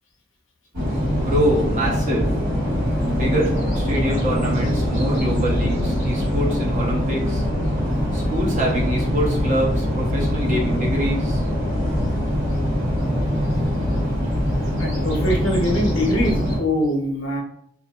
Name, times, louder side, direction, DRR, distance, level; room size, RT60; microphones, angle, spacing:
sound 1, 0.7-16.6, equal, 80° right, 1.5 m, -23 dB
voice 1, 1.1-2.3 3.1-7.4 8.1-11.4, equal, 35° right, -3 dB, 0.6 m, -25 dB
voice 2, 14.8-17.4, left 1 dB, 75° left, 1 dB, 0.6 m, -23 dB
2.5 x 2.5 x 2.2 m, 0.70 s
head